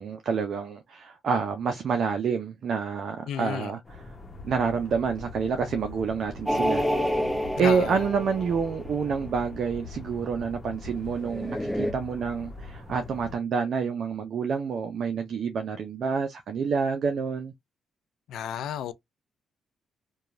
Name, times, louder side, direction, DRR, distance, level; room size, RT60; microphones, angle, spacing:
voice 1, 0.0-3.8 4.4-7.2 7.5-17.5, right 6 dB, 65° right, 0.5 m, -28 dB
voice 2, 3.3-3.7 7.6-8.1 18.3-18.9, left 9 dB, 75° left, 0.4 m, -32 dB
sound 1, 3.8-13.4, left 3 dB, 30° left, 1.0 m, -42 dB
sound 2, 6.5-9.1 11.2-11.9, equal, ahead, 0.7 m, -28 dB
2.8 x 2.3 x 2.5 m
supercardioid pair, 65°, 0 cm